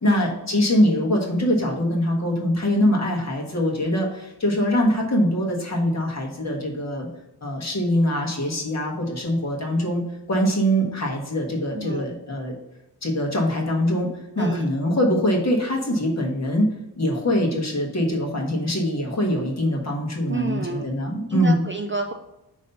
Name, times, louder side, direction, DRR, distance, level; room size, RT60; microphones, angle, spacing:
voice 1, 0.0-7.1 7.4-10.0 10.3-12.5 13.0-14.1 14.3-16.7 17.0-21.6, equal, 40° left, 0 dB, 1.4 m, -23 dB
voice 2, 11.7-12.1 14.4-14.7 20.3-20.9 21.3-22.1, right 4 dB, 30° right, 5 dB, 0.4 m, -29 dB
5.4 x 3.2 x 5.4 m, 0.92 s
wide cardioid pair, 115°, 42 cm